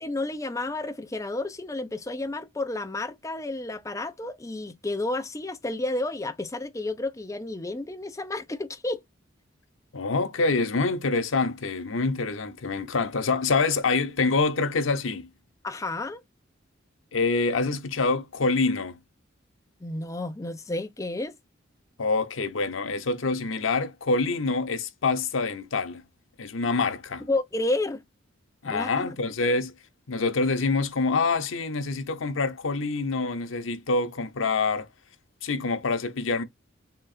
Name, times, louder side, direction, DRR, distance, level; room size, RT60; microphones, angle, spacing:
voice 1, 0.0-9.0 15.6-16.2 19.8-21.4 27.3-28.0 28.6-29.2, left 2 dB, 15° left, 0.5 m, -31 dB
voice 2, 9.9-15.3 17.1-18.9 22.0-26.0 26.4-27.3 28.6-29.7 30.1-34.9 35.4-36.4, left 3 dB, 85° left, 0.7 m, -26 dB
3.8 x 2.4 x 4.1 m
head